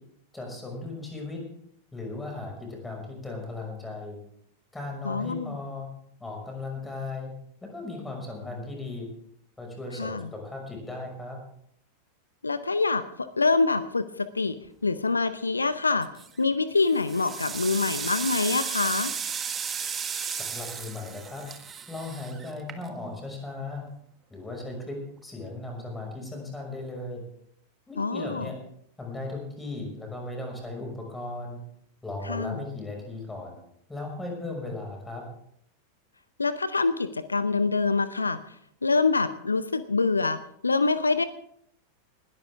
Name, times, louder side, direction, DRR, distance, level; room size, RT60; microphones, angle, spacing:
voice 1, 0.3-1.4 1.9-4.2 4.7-5.9 6.2-7.3 7.6-9.1 9.6-11.4 20.3-21.4 21.9-23.8 24.3-27.2 27.9-28.6 29.0-31.6 32.0-33.6 33.9-35.2, left 2 dB, 10° left, 1 dB, 5.7 m, -37 dB
voice 2, 5.0-5.6 10.0-10.3 12.4-13.0 13.4-14.6 14.8-16.1 16.4-19.1 28.0-28.5 32.3-32.6 36.4-38.4 38.8-41.2, left 3 dB, 80° left, 14 dB, 0.7 m, -25 dB
sound 1, 16.0-16.4 16.9-23.2, right 6 dB, 20° right, 1.5 m, -34 dB
20.0 x 13.5 x 3.6 m, 0.69 s
figure-of-eight pair, 90°, 0 cm